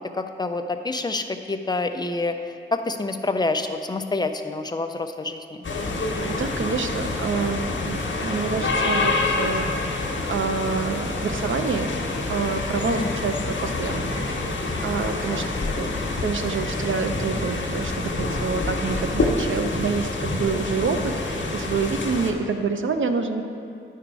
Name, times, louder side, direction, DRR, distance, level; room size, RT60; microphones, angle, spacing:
voice 1, 0.1-2.4 2.7-5.4 12.9-13.1 15.3-15.5, left 3 dB, 20° left, 7 dB, 0.5 m, -27 dB
sound 1, 5.6-22.3, left 2 dB, 75° left, 0.9 m, -27 dB
voice 2, 6.0-9.9 10.3-11.9 12.3-14.1 14.8-15.4 15.8-15.9 16.2-23.4, right 5 dB, 80° right, 7 dB, 0.6 m, -27 dB
10.0 x 5.0 x 4.7 m, 2.6 s
wide cardioid pair, 100°, 20 cm